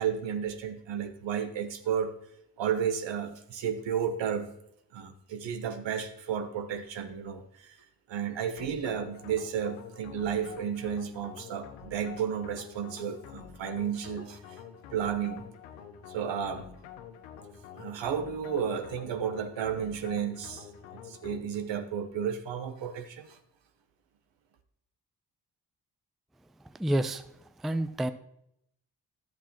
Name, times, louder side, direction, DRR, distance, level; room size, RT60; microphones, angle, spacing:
voice 1, 0.0-2.1 2.6-4.5 4.9-7.8 8.1-14.6 14.9-15.5 16.1-16.7 17.8-20.7 20.9-23.4, right 8 dB, 70° right, 9 dB, 1.1 m, -32 dB
sound 1, 8.6-21.8, left 8 dB, 90° left, 0.7 m, -47 dB
voice 2, 26.6-28.1, right 1 dB, ahead, 12 dB, 0.4 m, -30 dB
11.5 x 7.6 x 2.9 m, 0.77 s
hypercardioid pair, 40°, 47 cm